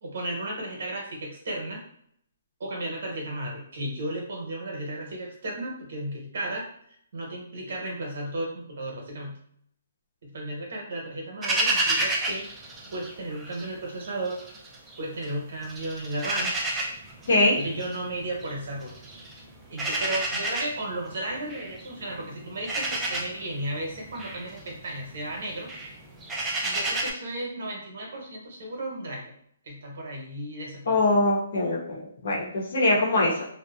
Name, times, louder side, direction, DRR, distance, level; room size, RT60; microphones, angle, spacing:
voice 1, 0.0-1.8 2.6-6.6 7.1-9.4 10.2-12.4 12.9-14.4 15.0-16.5 17.5-18.9 19.7-25.7 26.6-29.3 29.7-31.2, right 1 dB, 60° right, -1 dB, 0.9 m, -34 dB
sound 1, 11.4-13.7 14.0-15.3 15.6-27.1, right 2 dB, 10° right, 0.4 m, -31 dB
voice 2, 17.3-17.6 30.9-33.4, left 2 dB, 65° left, -2 dB, 0.9 m, -23 dB
2.7 x 2.1 x 2.3 m, 0.68 s
hypercardioid pair, 165°, 0 cm